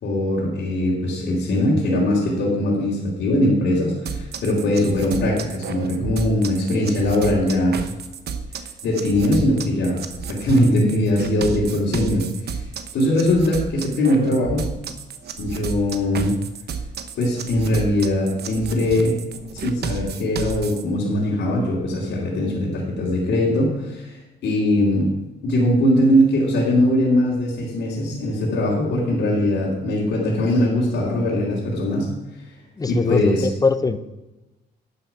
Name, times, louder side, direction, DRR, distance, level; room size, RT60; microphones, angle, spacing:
voice 1, 0.0-7.8 8.8-10.0 10.3-12.3 12.9-14.7 15.4-16.3 17.2-19.2 19.6-25.1 25.4-32.1 32.9-33.5, left 1 dB, 75° left, -6 dB, 2.9 m, -21 dB
sound 1, 4.1-20.8, right 6 dB, 60° right, 1.0 m, -32 dB
voice 2, 32.8-34.0, left 4 dB, 20° left, 12 dB, 0.7 m, -21 dB
11.0 x 6.9 x 5.8 m, 1.1 s
cardioid pair, 105°, 19 cm